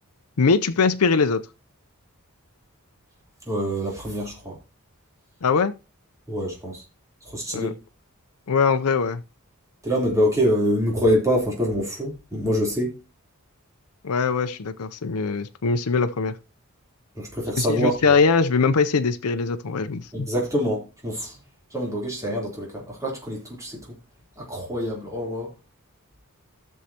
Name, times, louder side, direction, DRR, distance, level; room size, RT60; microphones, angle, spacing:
voice 1, 0.4-1.4 5.4-5.7 7.5-7.7 8.5-9.2 14.0-16.3 17.6-20.3, left 5 dB, 80° left, 0.6 m, -22 dB
voice 2, 3.5-4.6 6.3-6.8 7.3-7.7 9.8-13.0 17.2-18.2 20.1-21.4 21.7-24.0 24.4-25.5, equal, 15° right, 3.4 m, -25 dB
14.5 x 6.4 x 2.9 m
head